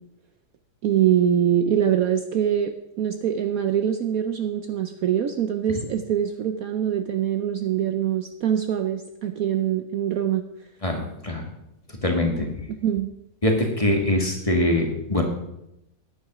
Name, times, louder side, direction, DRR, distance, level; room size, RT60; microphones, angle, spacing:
voice 1, 0.8-10.4 12.8-13.1, right 9 dB, 65° right, 8 dB, 1.0 m, -24 dB
voice 2, 10.8-11.4 12.0-12.5 13.4-15.2, left 1 dB, 20° left, 2 dB, 1.7 m, -23 dB
10.0 x 9.5 x 6.0 m, 0.84 s
omnidirectional pair, 1.9 m